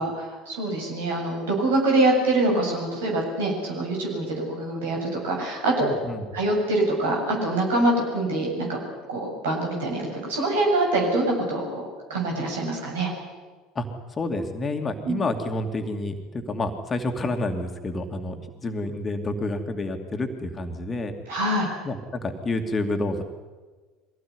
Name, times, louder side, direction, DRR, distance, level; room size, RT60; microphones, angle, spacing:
voice 1, 0.0-5.9 6.3-8.8 9.1-11.8 12.1-13.1 15.0-15.1 21.3-21.7, right 2 dB, 70° right, 0 dB, 7.4 m, -24 dB
voice 2, 5.8-6.3 13.7-21.1 21.8-23.2, left 2 dB, 25° left, 5 dB, 2.6 m, -29 dB
24.0 x 17.5 x 9.8 m, 1.3 s
figure-of-eight pair, 65°, 0 cm